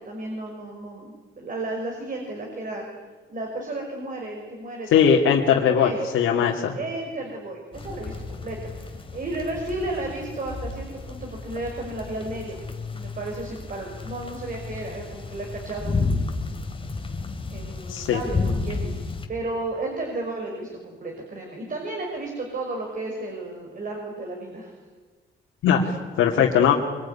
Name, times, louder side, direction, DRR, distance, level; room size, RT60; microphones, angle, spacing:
voice 1, 0.0-2.8 3.3-5.2 5.8-12.6 12.9-16.3 17.5-19.0 19.3-24.7, right 2 dB, 45° right, 1 dB, 5.8 m, -33 dB
voice 2, 4.9-6.7 17.9-18.2 25.6-26.7, left 7 dB, 80° left, -1 dB, 2.7 m, -20 dB
sound 1, 7.7-19.3, left 3 dB, 25° left, 2.9 m, -32 dB
23.5 x 22.5 x 9.9 m, 1.5 s
cardioid pair, 90°, 20 cm